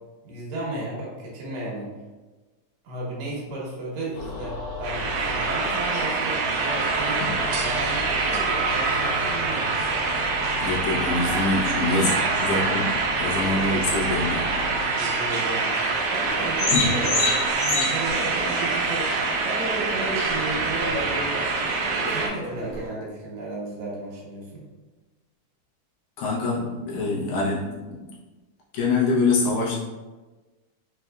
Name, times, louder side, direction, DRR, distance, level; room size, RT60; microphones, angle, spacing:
voice 1, 0.2-1.9 2.8-9.7 14.9-24.6, right 2 dB, 65° right, -4 dB, 1.7 m, -34 dB
sound 1, 4.1-14.8, left 1 dB, 90° left, 2.3 m, -35 dB
sound 2, 4.8-22.3, right 4 dB, 85° right, 1.8 m, -25 dB
voice 2, 10.6-12.1 12.4-14.5 16.7-16.9 26.2-28.0 28.7-29.8, left 3 dB, 70° left, -5 dB, 2.2 m, -25 dB
sound 3, 16.2-22.9, left 2 dB, 55° left, 1.7 m, -30 dB
5.7 x 2.5 x 2.2 m, 1.2 s
omnidirectional pair, 3.9 m